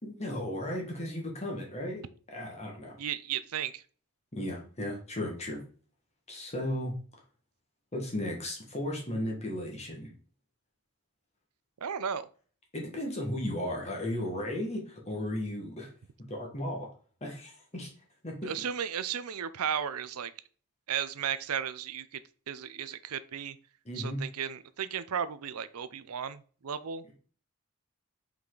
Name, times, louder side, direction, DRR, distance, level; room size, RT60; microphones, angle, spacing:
voice 1, 0.0-2.9 4.3-5.6 6.3-6.9 7.9-10.1 12.7-15.9 16.3-16.9 17.2-17.9 18.2-18.5 23.8-24.2, left 1 dB, 30° left, 0 dB, 1.6 m, -35 dB
voice 2, 3.0-3.8 11.8-12.3 18.4-20.3 20.9-22.2 22.5-23.6 24.0-27.0, right 8 dB, 85° right, 15 dB, 0.5 m, -34 dB
5.8 x 4.9 x 3.9 m, 0.42 s
head